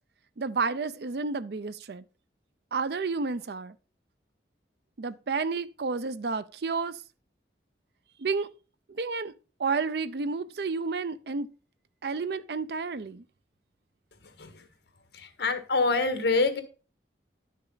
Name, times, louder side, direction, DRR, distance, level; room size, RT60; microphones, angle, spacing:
voice 1, 0.4-2.0 2.7-3.7 5.0-6.9 8.2-8.5 8.9-9.3 9.6-11.5 12.0-13.2, right 4 dB, 60° right, 0.5 m, -31 dB
voice 2, 14.2-14.7 15.1-16.6, left 3 dB, 70° left, 1.5 m, -26 dB
10.5 x 6.5 x 3.9 m
head